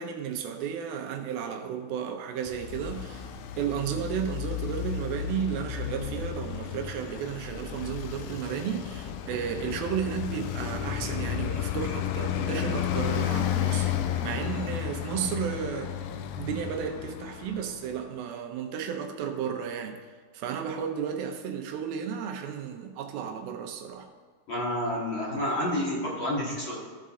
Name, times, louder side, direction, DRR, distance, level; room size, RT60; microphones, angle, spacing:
voice 1, 0.0-3.3 3.6-13.9 14.2-15.9 16.4-20.0 20.3-24.1, right 8 dB, 80° right, 5 dB, 2.6 m, -33 dB
Traffic noise roadway noise, 2.5-17.9, left 10 dB, 80° left, 2.3 m, -32 dB
voice 2, 24.5-26.7, left 1 dB, 40° left, -7 dB, 2.4 m, -29 dB
15.0 x 5.5 x 3.7 m, 1.5 s
omnidirectional pair, 4.3 m